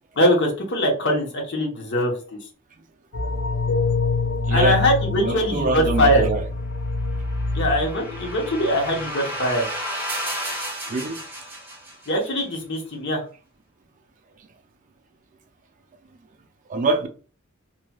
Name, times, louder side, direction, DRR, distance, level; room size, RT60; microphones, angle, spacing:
voice 1, 0.1-2.4 4.5-6.3 7.5-9.6 12.1-13.2, equal, 55° left, 0.9 m, -22 dB
sound 1, 3.1-9.1 9.4-9.6, left 3 dB, 75° left, 0.7 m, -26 dB
voice 2, 4.5-4.8 5.1-6.4 10.9-11.2 16.7-17.1, right 3 dB, 35° right, 0.4 m, -24 dB
sound 2, 7.0-12.3, equal, 10° right, 0.8 m, -33 dB
3.0 x 2.7 x 2.2 m
head